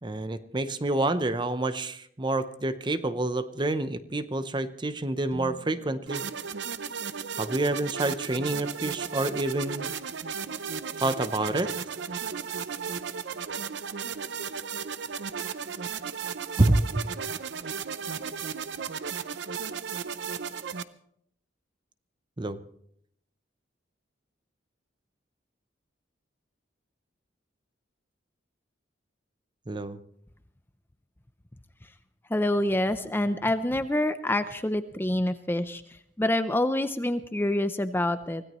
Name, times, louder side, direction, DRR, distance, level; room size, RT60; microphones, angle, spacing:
voice 1, 0.0-6.2 7.3-9.9 11.0-11.7 16.6-17.1 22.4-22.6 29.7-30.0, right 2 dB, 25° right, 12 dB, 0.7 m, -28 dB
sound 1, 5.3-9.3, right 1 dB, 35° left, 2.3 m, -51 dB
sound 2, 6.1-20.8, right 6 dB, 70° right, 0.6 m, -35 dB
voice 2, 32.3-38.4, left 1 dB, 10° left, 10 dB, 0.5 m, -27 dB
24.5 x 16.5 x 3.1 m, 0.70 s
head